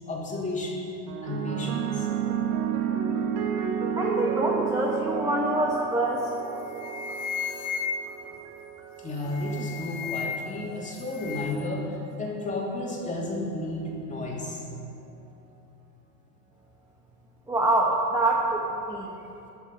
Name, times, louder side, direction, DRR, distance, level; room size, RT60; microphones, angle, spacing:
voice 1, 0.1-1.0 1.2-2.1 8.2-8.4 9.0-14.6, left 1 dB, 15° left, -2 dB, 2.6 m, -32 dB
sound 1, 1.1-9.6 10.5-10.9, right 7 dB, 65° right, 1.6 m, -31 dB
voice 2, 4.0-6.3 17.5-18.6 18.9-19.1, right 1 dB, 5° right, -2 dB, 1.1 m, -25 dB
sound 2, 6.2-6.4 6.7-8.3 9.2-10.6 10.9-11.7, left 6 dB, 40° left, 1.0 m, -34 dB
20.0 x 7.2 x 5.3 m, 2.9 s
supercardioid pair, 120°, 47 cm